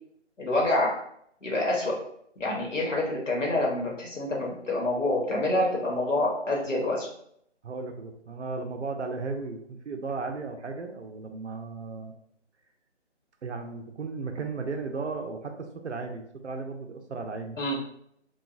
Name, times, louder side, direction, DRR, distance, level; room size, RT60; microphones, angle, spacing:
voice 1, 0.4-1.0 1.4-1.9 2.4-7.1 17.6-17.8, left 1 dB, 85° left, -2 dB, 1.2 m, -27 dB
voice 2, 7.6-12.1 13.4-17.6, right 4 dB, 70° right, 4 dB, 0.6 m, -35 dB
2.9 x 2.3 x 2.4 m, 0.70 s
figure-of-eight pair, 165°, 36 cm